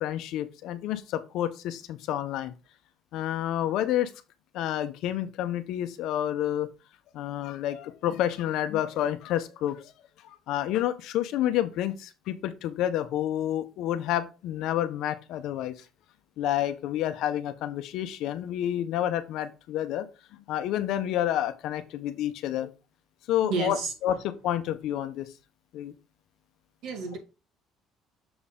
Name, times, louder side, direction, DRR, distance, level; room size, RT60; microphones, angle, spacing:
voice 1, 0.0-2.5 3.1-4.1 4.5-6.7 7.1-9.9 10.2-15.8 16.4-20.1 20.5-22.7 23.3-25.3 25.7-25.9, left 12 dB, 65° left, 0.7 m, -29 dB
voice 2, 23.5-23.9 26.8-27.2, right 4 dB, 65° right, 2.0 m, -30 dB
6.9 x 4.2 x 3.7 m
cardioid pair, 160°, 0 cm